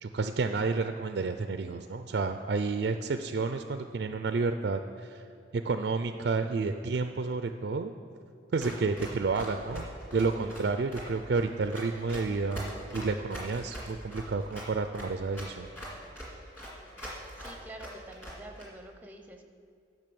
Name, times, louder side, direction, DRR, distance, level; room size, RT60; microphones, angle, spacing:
voice 1, 0.0-5.2 5.5-7.9 8.5-9.9 10.1-15.7, right 4 dB, 55° right, 8 dB, 0.4 m, -30 dB
Run, 8.6-18.6, equal, 10° left, 2.2 m, -42 dB
voice 2, 17.4-19.5, right 1 dB, 10° right, 4 dB, 0.7 m, -47 dB
10.5 x 6.1 x 6.9 m, 2.3 s
head